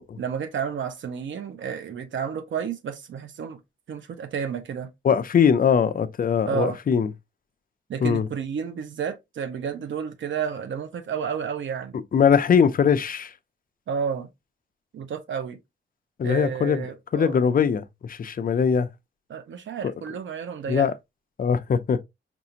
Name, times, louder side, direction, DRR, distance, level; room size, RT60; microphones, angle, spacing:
voice 1, 0.2-3.6 3.9-4.9 6.5-6.8 7.9-12.0 13.9-14.3 14.9-15.6 16.2-17.4 19.3-20.9, right 7 dB, 80° right, 0.7 m, -31 dB
voice 2, 5.0-7.1 8.0-8.3 12.1-13.3 16.2-16.8 17.1-18.9 19.8-19.9 20.7-20.9 21.4-22.0, left 7 dB, 50° left, 0.5 m, -21 dB
5.3 x 2.4 x 2.8 m
wide cardioid pair, 145°, 19 cm